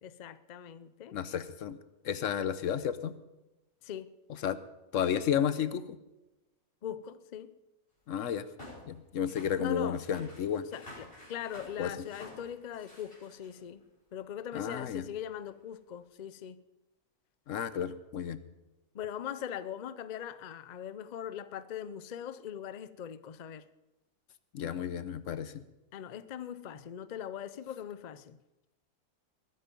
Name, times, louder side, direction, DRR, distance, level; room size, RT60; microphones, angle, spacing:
voice 1, 0.0-1.2 3.8-4.1 6.8-7.5 9.6-10.0 10.7-13.8 14.1-16.6 18.9-23.7 25.9-28.4, left 9 dB, 85° left, 0.3 m, -41 dB
voice 2, 1.1-1.8 2.0-3.1 4.3-4.6 4.9-6.0 8.1-8.5 8.8-10.7 11.8-11.9 14.5-15.0 17.5-18.4 24.5-25.6, left 8 dB, 60° left, 1.1 m, -32 dB
sound 1, 8.6-13.8 14.6-14.7 15.4-15.5, left 1 dB, 35° left, 6.1 m, -51 dB
20.5 x 9.5 x 5.3 m
omnidirectional pair, 1.6 m